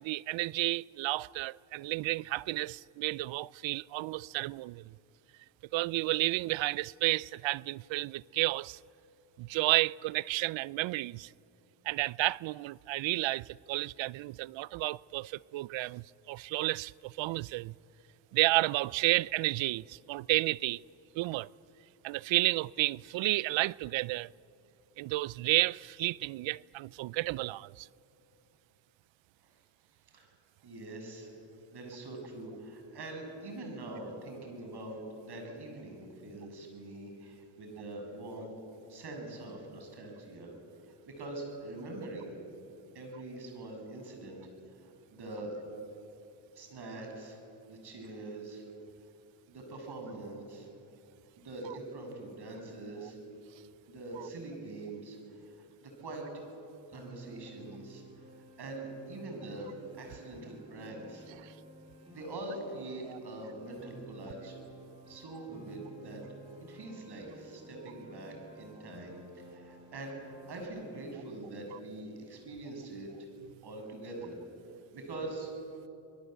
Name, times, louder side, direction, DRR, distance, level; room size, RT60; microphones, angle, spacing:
voice 1, 0.0-5.0 5.7-8.8 9.4-11.3 11.8-17.7 18.3-20.8 21.1-21.5 22.0-24.3 25.0-27.9 54.2-54.3 61.4-61.5 63.1-63.2, right 19 dB, 75° right, 0.6 m, -31 dB
voice 2, 30.6-31.3 31.7-38.6 38.9-40.5 40.8-42.3 42.9-44.4 44.8-45.6 46.5-47.4 47.7-48.6 49.5-50.7 51.4-53.2 53.9-56.5 56.9-58.3 58.6-61.6 62.1-64.6 65.1-66.2 66.6-73.1 73.6-74.4 74.9-75.5, right 2 dB, 55° right, 7.4 m, -43 dB
Piano, 56.9-70.6, right 2 dB, 10° right, 7.4 m, -53 dB
27.5 x 21.0 x 8.0 m
cardioid pair, 75°, 46 cm